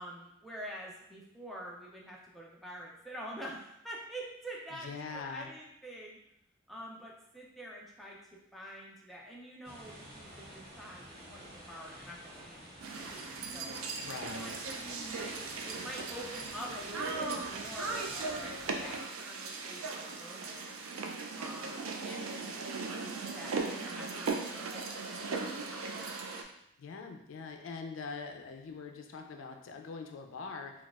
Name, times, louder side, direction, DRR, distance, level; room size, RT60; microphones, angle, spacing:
voice 1, 0.0-6.2 6.7-8.2 8.5-13.2 13.5-13.7 14.3-20.7 21.4-22.6 22.9-26.2, equal, ahead, -4 dB, 0.4 m, -46 dB
voice 2, 4.7-5.5 14.0-14.6 26.8-30.7, left 4 dB, 70° left, 4 dB, 0.4 m, -43 dB
sound 1, 9.6-19.0, equal, 25° right, 1.4 m, -50 dB
sound 2, 12.8-26.4, right 4 dB, 85° right, 0.4 m, -38 dB
4.1 x 2.3 x 2.3 m, 0.78 s
head